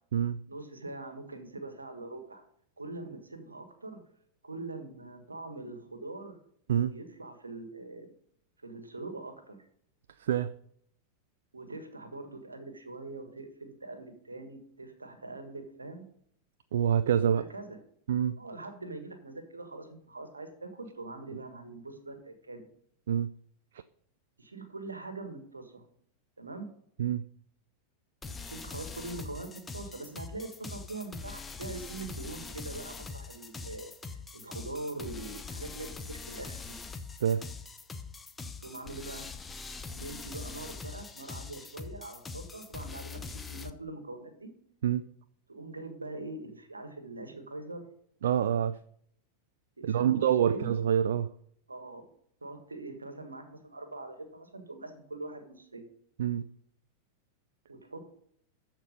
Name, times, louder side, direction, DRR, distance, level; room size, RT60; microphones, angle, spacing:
voice 1, 0.5-2.4 2.8-4.0 4.4-6.4 6.9-8.1 8.6-9.6 11.5-16.0 17.3-17.8 18.4-22.6 24.4-25.8 26.4-26.7 28.3-36.8 38.6-39.3 39.9-44.5 45.5-47.8 49.8-50.7 51.7-52.1 52.4-55.9 57.7-58.1, right 2 dB, 80° right, 7 dB, 1.6 m, -43 dB
voice 2, 10.2-10.5 16.7-17.4 18.1-18.4 23.1-23.3 27.0-27.2 37.2-37.4 44.8-45.1 48.2-48.8 49.8-51.3 56.2-56.4, right 9 dB, 60° right, 14 dB, 0.3 m, -26 dB
sound 1, 28.2-43.7, left 4 dB, 15° left, 0.7 m, -43 dB
13.0 x 4.4 x 5.3 m, 0.66 s
figure-of-eight pair, 90°, 0 cm